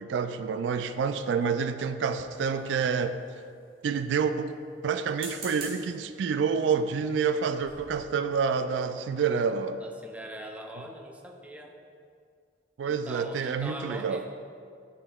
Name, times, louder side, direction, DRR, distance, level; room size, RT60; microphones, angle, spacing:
voice 1, 0.0-3.2 3.8-4.5 4.8-9.8 12.8-14.2, right 6 dB, 85° right, 10 dB, 0.3 m, -28 dB
sound 1, 2.3-3.1 5.0-5.9 6.7-6.9 7.3-7.4 7.6-7.9, right 2 dB, 55° right, 1.7 m, -43 dB
voice 2, 9.8-11.8 12.8-14.3, right 1 dB, 10° right, 2 dB, 0.5 m, -42 dB
9.6 x 5.7 x 2.3 m, 2.3 s
head